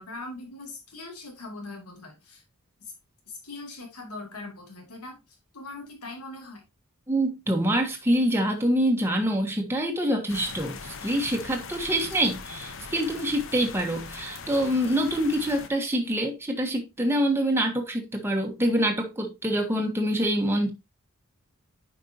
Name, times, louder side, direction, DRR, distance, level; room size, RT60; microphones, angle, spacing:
voice 1, 0.0-2.4 3.4-5.2 5.5-6.6, left 2 dB, 90° left, 2.8 m, -41 dB
voice 2, 7.1-20.7, right 1 dB, 10° right, 1.3 m, -25 dB
sound 1, 10.3-15.7, left 5 dB, 60° left, 0.9 m, -41 dB
9.4 x 5.4 x 2.8 m
head